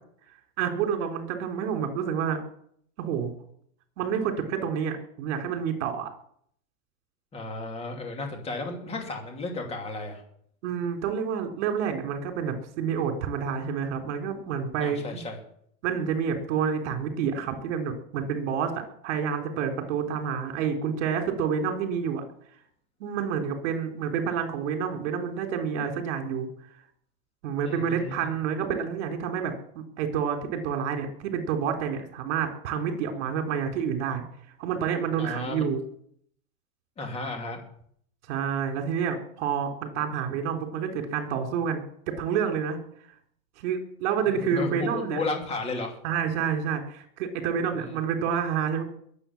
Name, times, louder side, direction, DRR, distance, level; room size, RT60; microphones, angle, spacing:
voice 1, 0.6-2.4 3.0-3.3 4.0-6.1 10.6-15.2 15.8-22.2 23.0-26.5 27.4-34.2 34.6-35.8 38.3-41.8 42.1-42.8 43.6-45.2 46.0-48.8, right 7 dB, 55° right, 5 dB, 3.9 m, -28 dB
voice 2, 7.3-10.2 14.8-15.4 27.6-28.1 35.2-35.8 37.0-37.6 44.2-46.0 47.7-48.0, left 3 dB, 15° left, 2 dB, 2.8 m, -34 dB
21.5 x 8.4 x 7.3 m, 0.66 s
supercardioid pair, 160°, 43 cm